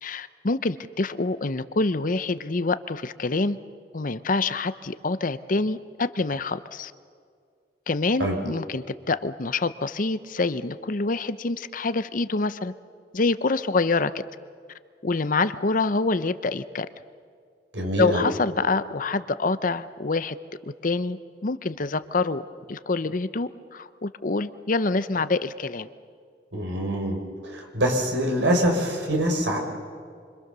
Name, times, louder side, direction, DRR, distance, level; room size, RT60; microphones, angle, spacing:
voice 1, 0.0-3.6 3.9-6.9 7.9-12.7 13.1-14.2 15.0-16.9 18.0-20.4 20.8-25.9, left 3 dB, 50° left, 13 dB, 0.8 m, -26 dB
voice 2, 17.7-18.2 26.5-29.6, right 1 dB, 90° right, 2 dB, 5.0 m, -24 dB
27.0 x 25.5 x 6.8 m, 2.1 s
head